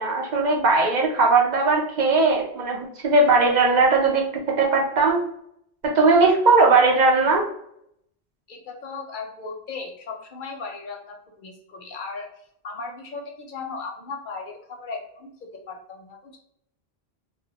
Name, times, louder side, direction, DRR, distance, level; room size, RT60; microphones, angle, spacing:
voice 1, 0.0-5.3 5.8-7.5, right 3 dB, 55° right, 1 dB, 0.6 m, -19 dB
voice 2, 8.5-12.3 12.6-16.4, left 4 dB, 60° left, 3 dB, 0.6 m, -37 dB
2.1 x 2.1 x 3.8 m, 0.74 s
omnidirectional pair, 1.0 m